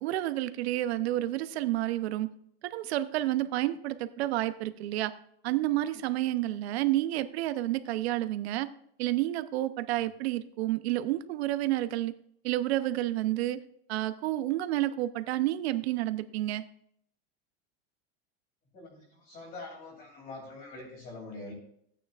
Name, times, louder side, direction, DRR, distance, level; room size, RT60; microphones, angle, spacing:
voice 1, 0.0-2.3 2.7-5.1 5.4-8.7 9.0-12.1 12.4-13.6 13.9-16.6, right 15 dB, 90° right, 13 dB, 0.7 m, -30 dB
voice 2, 18.7-21.5, left 2 dB, 30° left, 0 dB, 2.9 m, -44 dB
13.5 x 9.1 x 2.4 m, 0.69 s
supercardioid pair, 180°, 31 cm